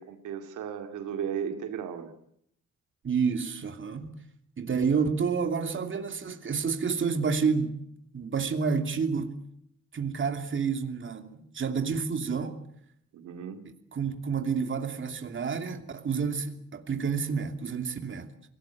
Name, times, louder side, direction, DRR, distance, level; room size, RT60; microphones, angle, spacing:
voice 1, 0.0-2.1 13.1-13.6, right 8 dB, 80° right, 2.3 m, -35 dB
voice 2, 3.0-4.0 4.6-7.7 8.1-9.4 9.9-12.6 13.6-18.3, right 5 dB, 40° right, 2.8 m, -29 dB
24.0 x 18.0 x 9.2 m
cardioid pair, 90°, 30 cm